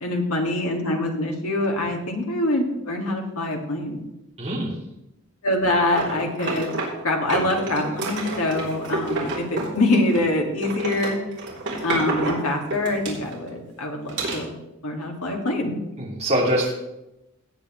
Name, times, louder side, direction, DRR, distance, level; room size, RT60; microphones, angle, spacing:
voice 1, 0.0-4.0 5.4-11.2 11.8-14.6 14.8-15.8, left 1 dB, 80° left, 1 dB, 2.2 m, -24 dB
voice 2, 4.4-4.7 16.0-16.7, right 1 dB, 30° right, -4 dB, 2.6 m, -23 dB
sound 1, 6.0-7.0 7.3-10.3 10.6-13.5 14.1-14.4, right 2 dB, 55° right, 3.3 m, -29 dB
17.5 x 8.6 x 3.2 m, 0.91 s
head